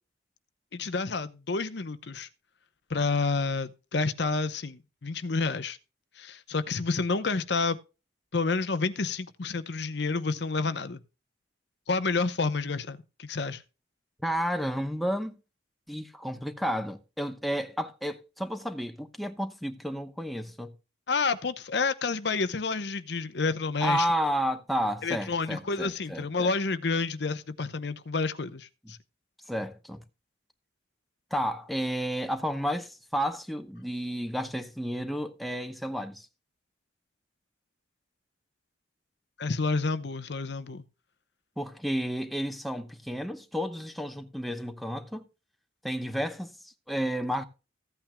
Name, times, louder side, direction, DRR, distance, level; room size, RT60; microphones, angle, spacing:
voice 1, 0.7-2.3 2.9-5.8 6.2-7.8 8.3-11.0 11.9-13.6 21.1-24.1 25.0-29.0 39.4-40.8, left 4 dB, 65° left, 0.8 m, -29 dB
voice 2, 14.2-15.3 15.9-20.7 23.8-26.5 29.5-30.0 31.3-36.3 41.6-45.3 45.8-47.4, equal, ahead, 0.8 m, -31 dB
15.0 x 8.8 x 2.2 m
head